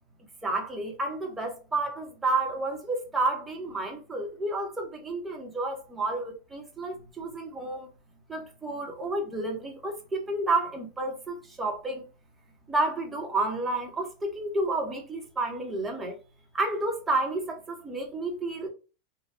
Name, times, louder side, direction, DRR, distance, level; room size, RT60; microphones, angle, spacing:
voice 1, 0.4-7.9 8.3-12.1 12.7-16.2 16.5-18.7, right 2 dB, 15° right, 0.9 m, -30 dB
3.3 x 2.2 x 2.7 m
supercardioid pair, 135°, 0 cm